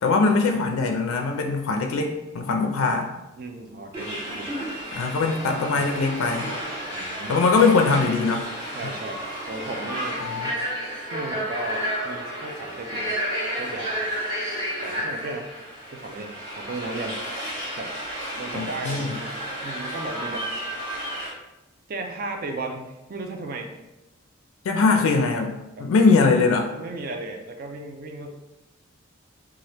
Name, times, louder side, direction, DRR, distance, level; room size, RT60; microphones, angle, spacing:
voice 1, 0.0-3.1 4.9-6.5 7.3-8.5 10.2-10.5 18.5-19.2 24.6-25.5 25.8-26.7, left 4 dB, 80° left, 3 dB, 0.4 m, -21 dB
voice 2, 3.4-4.5 5.6-5.9 6.9-7.4 8.7-10.2 11.1-13.2 13.6-14.1 14.8-15.5 15.9-17.2 17.8-17.9 18.4-19.4 19.6-20.5 21.9-23.7 25.7-25.9 26.7-28.4, right 2 dB, 45° right, 4 dB, 0.4 m, -35 dB
sound 1, 3.9-21.3, equal, 20° right, 0.9 m, -32 dB
2.9 x 2.3 x 3.2 m, 0.97 s
head